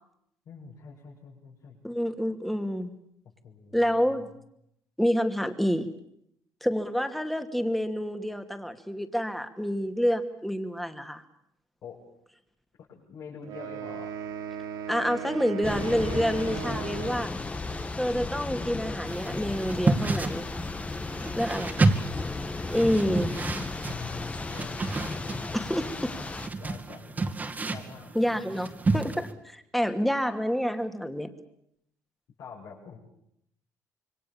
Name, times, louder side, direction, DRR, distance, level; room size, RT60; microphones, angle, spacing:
voice 1, 0.5-1.8 3.4-4.3 11.8-12.0 12.8-14.1 15.1-15.5 21.0-22.0 23.8-27.2 27.6-28.1 32.4-33.0, left 6 dB, 65° left, -5 dB, 7.4 m, -46 dB
voice 2, 1.8-2.9 3.7-4.2 5.0-5.9 6.6-11.2 14.9-17.3 18.0-20.5 21.4-21.8 22.7-23.3 25.5-26.1 28.1-31.3, equal, ahead, 7 dB, 2.5 m, -28 dB
sound 1, 13.4-17.3, right 8 dB, 85° right, 5.2 m, -37 dB
Thunder / Rain, 15.6-26.5, left 3 dB, 20° left, 1.7 m, -35 dB
sound 2, 19.1-29.3, right 3 dB, 25° right, 2.4 m, -31 dB
27.5 x 23.5 x 7.3 m, 0.74 s
cardioid pair, 110°, 6 cm